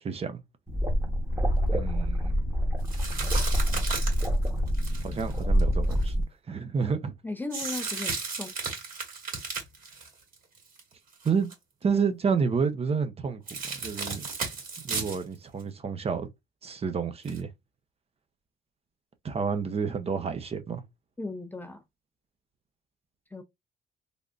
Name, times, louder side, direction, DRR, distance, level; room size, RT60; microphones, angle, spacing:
voice 1, 0.0-0.4 1.7-2.5 5.0-6.1 6.5-7.1 11.2-11.5 11.8-14.3 14.8-16.3 16.6-17.5 19.2-20.8, right 5 dB, 35° right, 0.7 m, -29 dB
sound 1, 0.7-6.2, equal, 15° right, 1.1 m, -26 dB
sound 2, 2.9-6.1 7.5-10.8 11.1-11.5 13.5-15.2 15.6-15.7 17.3-17.4, right 4 dB, 50° right, 2.1 m, -34 dB
voice 2, 7.2-8.5 21.2-21.8 23.3-23.4, left 3 dB, 10° left, 0.5 m, -36 dB
3.5 x 2.5 x 2.4 m
cardioid pair, 85°, 18 cm